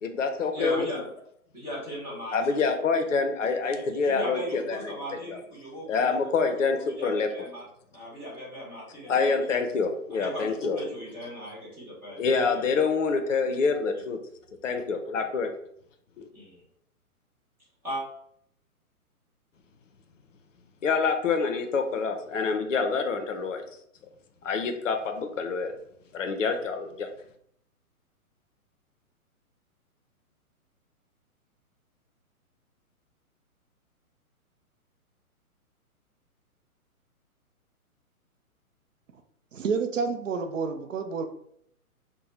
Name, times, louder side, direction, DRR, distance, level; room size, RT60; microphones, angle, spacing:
voice 1, 0.0-0.9 2.3-5.0 5.3-5.4 5.9-7.5 9.1-10.8 12.2-14.2 14.6-15.5 16.2-16.3 20.8-23.6 24.4-25.7 26.1-27.1, left 4 dB, 60° left, 6 dB, 0.6 m, -26 dB
voice 2, 0.5-1.0 1.5-2.7 3.7-7.6 7.9-9.5 10.1-12.7 13.9-14.0 16.3-16.6 17.8-18.0, equal, 5° right, -10 dB, 0.5 m, -38 dB
voice 3, 39.5-41.3, right 5 dB, 60° right, 7 dB, 0.5 m, -29 dB
2.6 x 2.1 x 3.2 m, 0.69 s
figure-of-eight pair, 120°, 44 cm